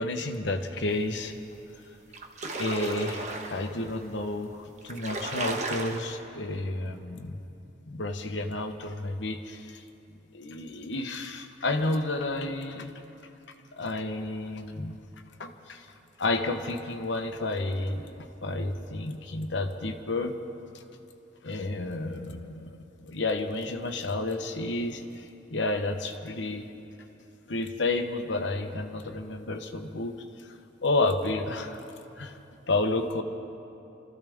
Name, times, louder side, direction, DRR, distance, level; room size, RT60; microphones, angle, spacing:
voice 1, 0.0-1.3 2.6-7.4 7.9-9.8 10.3-12.9 13.7-15.0 15.4-15.9 16.2-20.3 21.4-26.7 27.5-30.5 30.8-31.8 32.2-32.4 32.7-33.2, left 2 dB, 80° left, 5 dB, 1.0 m, -31 dB
sound 1, 1.5-1.6 2.0-3.7 4.4-4.5 4.8-6.0, right 2 dB, 40° right, 1.2 m, -34 dB
27.0 x 14.0 x 3.6 m, 2.8 s
head